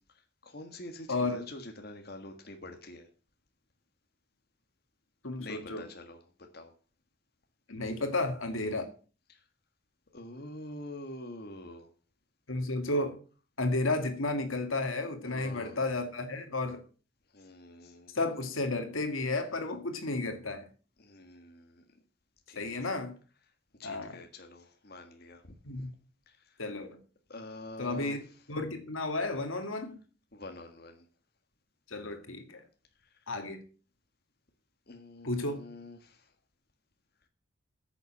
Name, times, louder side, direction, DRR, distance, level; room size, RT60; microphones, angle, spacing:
voice 1, 0.1-3.1 5.4-6.2 6.5-6.7 8.6-8.8 9.3-9.5 10.1-11.9 15.2-15.8 17.3-18.2 21.0-21.8 22.5-22.9 23.8-25.9 26.3-26.6 27.3-28.5 30.3-31.1 33.0-33.3 34.9-36.3, left 1 dB, 50° left, 5 dB, 1.6 m, -46 dB
voice 2, 1.1-1.4 5.2-5.8 7.7-8.9 12.5-13.2 13.6-16.8 18.1-20.7 22.6-23.1 23.8-24.2 25.6-25.9 26.6-27.0 27.8-28.2 28.5-30.0 31.9-32.6 33.3-33.6 35.2-35.6, left 2 dB, 85° left, 6 dB, 2.1 m, -32 dB
9.8 x 7.1 x 7.3 m, 0.38 s
head